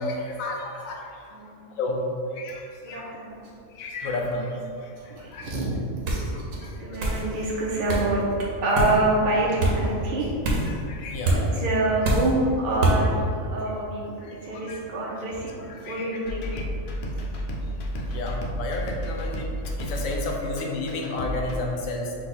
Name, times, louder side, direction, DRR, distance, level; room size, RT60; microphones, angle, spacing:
voice 1, 0.0-2.0 2.3-3.1 3.7-5.5 6.3-7.1 10.7-11.6 14.2-14.8 15.2-15.3 15.6-16.2 16.5-17.0 17.6-22.2, left 2 dB, 85° left, 0 dB, 1.1 m, -33 dB
voice 2, 2.8-3.5 5.1-5.7 6.1-6.2 6.5-8.2 8.6-10.4 11.3-14.1 14.4-15.6 15.8-16.6, right 2 dB, 50° right, -5 dB, 0.7 m, -26 dB
sound 1, 6.1-6.3 7.0-7.2 7.9-8.1 8.7-9.0 9.6-9.8 10.4-10.7 11.2-11.4 12.0-12.3 12.8-13.0, right 1 dB, 80° right, 1.2 m, -23 dB
sound 2, 16.2-21.6, equal, 60° left, 0.8 m, -31 dB
4.7 x 2.2 x 4.1 m, 2.5 s
omnidirectional pair, 1.4 m